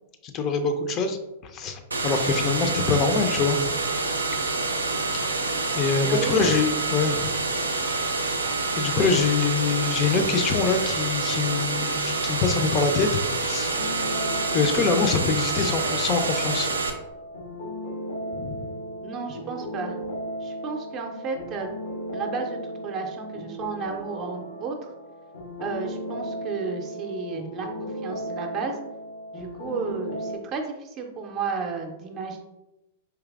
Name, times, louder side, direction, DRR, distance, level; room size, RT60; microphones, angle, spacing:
voice 1, 0.2-3.7 5.7-7.3 8.7-13.1 13.4-13.8 14.5-16.7 18.3-18.7, left 5 dB, 35° left, 7 dB, 0.5 m, -24 dB
sound 1, 1.9-16.9, right 3 dB, 80° right, 0.4 m, -27 dB
voice 2, 6.0-6.3 9.0-9.1 19.0-20.0 20.4-21.7 22.1-24.9 25.6-28.8 29.3-32.4, right 5 dB, 35° right, 3 dB, 0.6 m, -33 dB
sound 2, 13.7-30.4, equal, 75° left, 0.7 m, -36 dB
4.6 x 3.1 x 2.4 m, 0.96 s
figure-of-eight pair, 100°, 0 cm